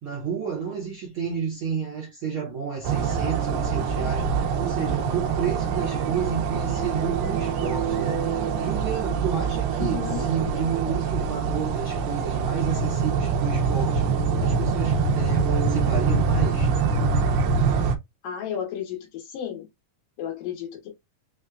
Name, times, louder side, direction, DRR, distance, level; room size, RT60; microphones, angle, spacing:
voice 1, 0.0-16.7, right 7 dB, 70° right, 1.2 m, -31 dB
sound 1, 2.8-18.0, right 5 dB, 90° right, 2.4 m, -24 dB
voice 2, 9.8-10.3 17.8-17.9 18.2-19.7 20.2-20.9, left 9 dB, 80° left, 2.8 m, -33 dB
6.1 x 2.2 x 2.4 m
omnidirectional pair, 3.8 m